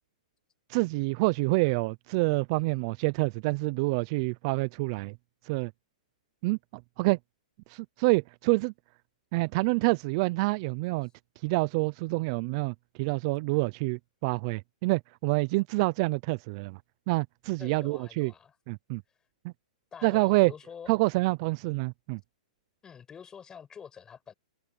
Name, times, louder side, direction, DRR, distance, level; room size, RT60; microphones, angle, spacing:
voice 1, 0.7-5.1 5.4-5.7 6.4-6.6 7.0-7.2 7.7-8.7 9.3-11.1 11.4-16.8 17.1-18.3 18.7-19.0 19.4-19.5 20.0-20.5 20.9-22.2, right 25 dB, 40° right, 0.5 m, -27 dB
voice 2, 17.6-18.6 19.9-20.9 22.8-24.3, left 7 dB, 15° left, 6.9 m, -46 dB
hypercardioid pair, 140°, 4 cm